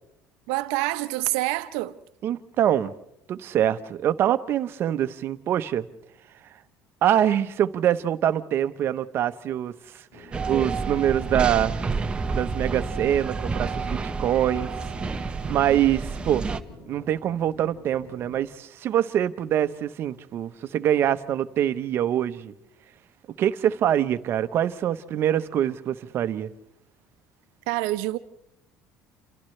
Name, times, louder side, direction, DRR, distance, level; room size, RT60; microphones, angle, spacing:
voice 1, 0.5-2.0 27.7-28.2, right 18 dB, 85° right, 1.0 m, -26 dB
voice 2, 2.2-2.9 3.3-5.9 7.0-9.7 10.1-11.8 12.3-14.7 15.5-16.5 16.9-22.5 23.4-26.5, right 10 dB, 50° right, 1.0 m, -24 dB
sound 1, 10.1-18.5, left 2 dB, 55° left, 3.8 m, -48 dB
sound 2, 10.3-16.6, right 4 dB, 20° right, 1.0 m, -29 dB
29.0 x 27.5 x 3.3 m
cardioid pair, 115°, 5 cm